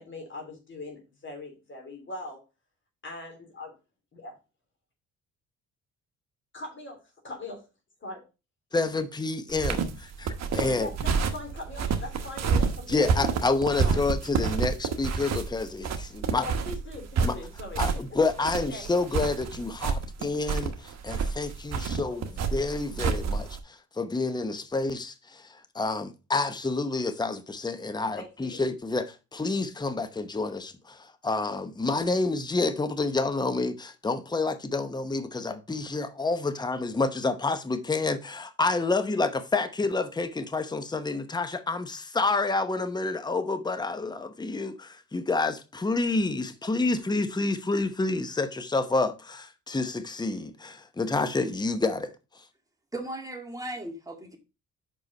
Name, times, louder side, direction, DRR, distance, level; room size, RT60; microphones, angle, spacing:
voice 1, 0.0-2.4 3.0-3.7 4.1-4.4 6.5-7.0 7.2-7.6 8.0-8.2 10.6-13.2 13.8-14.0 16.3-17.8 18.4-18.9 28.1-28.6, left 2 dB, 40° left, 3.0 m, -41 dB
voice 2, 8.7-10.9 12.9-16.5 17.2-17.4 17.8-52.1, left 3 dB, 15° left, 0.8 m, -29 dB
sound 1, 9.5-23.6, right 5 dB, 60° right, 1.2 m, -29 dB
voice 3, 52.9-54.4, right 1 dB, 10° right, 2.1 m, -37 dB
5.6 x 5.3 x 5.2 m
cardioid pair, 90°, 30 cm